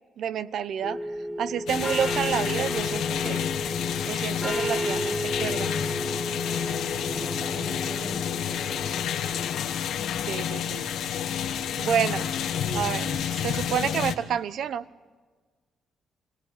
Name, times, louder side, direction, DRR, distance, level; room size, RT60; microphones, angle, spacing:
voice 1, 0.2-1.0 1.4-3.5 4.0-5.7 10.3-10.9 11.8-12.3 12.7-13.0 13.3-14.9, right 8 dB, 70° right, 14 dB, 0.9 m, -29 dB
sound 1, 0.8-9.6, equal, ahead, 1.9 m, -33 dB
sound 2, 1.7-14.2, left 9 dB, 80° left, 1.7 m, -29 dB
voice 2, 6.3-9.0 12.5-13.3, right 2 dB, 40° right, -2 dB, 4.2 m, -42 dB
28.5 x 18.0 x 9.3 m, 1.4 s
cardioid pair, 90°, 0 cm